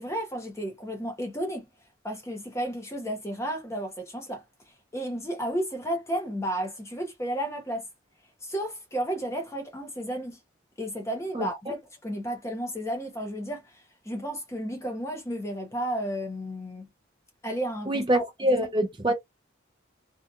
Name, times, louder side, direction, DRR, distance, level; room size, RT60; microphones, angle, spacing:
voice 1, 0.0-1.7 2.0-4.4 4.9-7.8 8.4-10.4 10.8-16.9 17.4-18.2 18.5-18.6, right 1 dB, 15° left, 0.8 m, -33 dB
voice 2, 11.3-11.7 17.9-19.1, right 1 dB, 25° right, 0.5 m, -25 dB
2.7 x 2.4 x 2.3 m
head